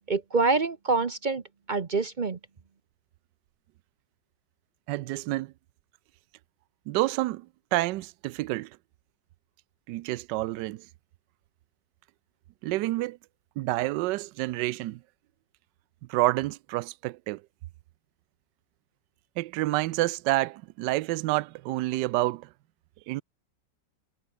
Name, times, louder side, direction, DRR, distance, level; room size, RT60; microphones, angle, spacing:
voice 1, 0.1-1.4 1.7-2.4, right 3 dB, 40° right, 0.6 m, -26 dB
voice 2, 4.9-5.5 6.9-8.7 9.9-10.9 12.6-13.2 13.6-15.0 16.1-17.4 19.4-22.5 23.1-23.2, right 18 dB, 75° right, 1.2 m, -28 dB
omnidirectional pair, 2.0 m